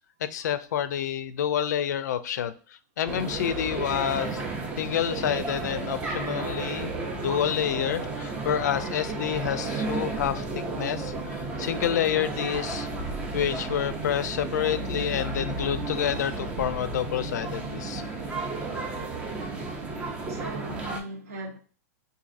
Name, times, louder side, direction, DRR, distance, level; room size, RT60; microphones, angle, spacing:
voice 1, 0.2-4.4 4.8-6.9 7.2-13.0 13.3-18.0, left 10 dB, 75° left, 0.4 m, -28 dB
sound 1, 3.1-21.0, right 3 dB, 10° right, 0.4 m, -33 dB
voice 2, 19.8-21.6, right 1 dB, 60° right, 0.8 m, -39 dB
4.0 x 2.7 x 2.5 m
supercardioid pair, 160°, 9 cm